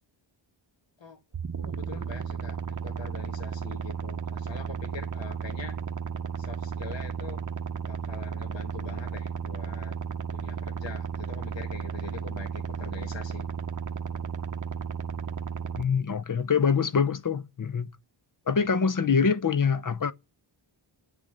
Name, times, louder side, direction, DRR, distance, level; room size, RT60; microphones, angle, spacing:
sound 1, 1.3-15.8, right 6 dB, 40° right, 0.8 m, -34 dB
voice 1, 1.6-5.8 6.4-7.4 7.8-10.0 10.3-13.5 13.9-14.3, left 5 dB, 60° left, 1.7 m, -44 dB
voice 2, 15.8-17.9 18.5-20.1, left 6 dB, 40° left, 0.7 m, -25 dB
11.5 x 6.8 x 6.6 m
wide cardioid pair, 140°, 49 cm